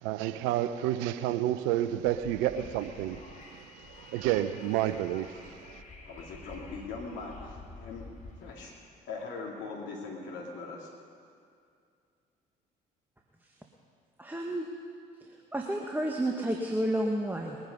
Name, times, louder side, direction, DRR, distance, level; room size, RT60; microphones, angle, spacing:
voice 1, 0.0-3.2 3.5-5.8, right 12 dB, 75° right, 11 dB, 0.8 m, -30 dB
Wind, 1.9-8.5, left 3 dB, 40° left, 2.8 m, -49 dB
voice 2, 6.0-8.1 8.4-8.7 9.1-10.9, left 4 dB, 65° left, -2 dB, 2.5 m, -41 dB
voice 3, 14.2-14.7 15.2-17.6, right 1 dB, 10° right, 1 dB, 1.7 m, -31 dB
21.5 x 9.5 x 5.4 m, 2.3 s
hypercardioid pair, 55°, 20 cm